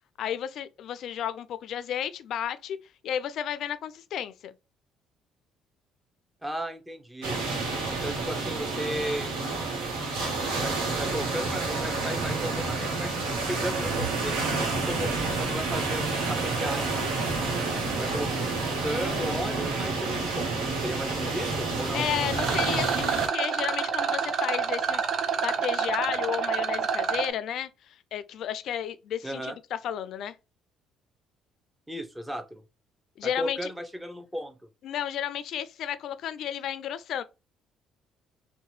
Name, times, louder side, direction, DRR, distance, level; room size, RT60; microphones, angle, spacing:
voice 1, 0.2-2.8 3.0-4.5 21.9-25.0 25.4-30.3 33.2-33.7 34.8-37.2, left 10 dB, 65° left, 0.3 m, -32 dB
voice 2, 6.4-7.4 7.9-9.3 10.2-17.4 17.9-18.3 18.7-20.5 20.8-22.1 29.2-29.6 31.9-32.6 33.2-34.6, equal, 10° right, 0.5 m, -35 dB
sound 1, 7.2-23.3, right 3 dB, 90° right, 0.9 m, -29 dB
Rattle, 22.3-27.3, right 6 dB, 55° right, 0.6 m, -28 dB
2.8 x 2.1 x 3.0 m
supercardioid pair, 70°, 0 cm